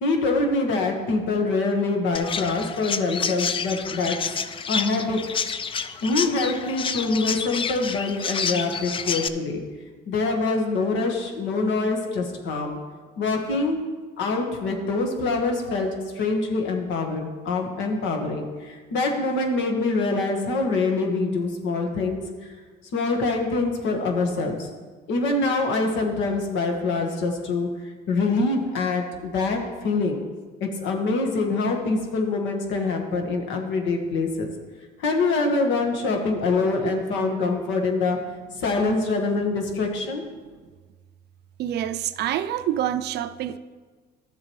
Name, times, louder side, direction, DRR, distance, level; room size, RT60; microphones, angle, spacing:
voice 1, 0.0-4.3 4.7-5.2 6.0-9.6 10.1-12.8 13.2-13.8 14.2-22.2 22.9-24.7 25.1-27.7 28.1-30.2 30.6-34.5 35.0-38.2 38.6-40.2, left 3 dB, 75° left, 2 dB, 1.6 m, -25 dB
Chirp tweet, 2.1-9.3, left 6 dB, 25° left, 0.4 m, -29 dB
voice 2, 41.6-43.6, right 11 dB, 60° right, 11 dB, 0.5 m, -27 dB
12.5 x 7.5 x 3.1 m, 1.4 s
cardioid pair, 110°, 19 cm